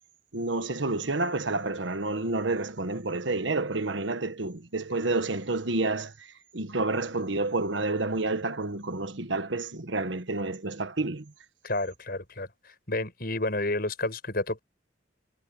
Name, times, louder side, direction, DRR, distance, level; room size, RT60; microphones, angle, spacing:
voice 1, 0.3-6.1 6.5-11.3, right 2 dB, 75° right, 1.5 m, -29 dB
voice 2, 11.6-14.6, left 2 dB, 55° left, 6.7 m, -30 dB
head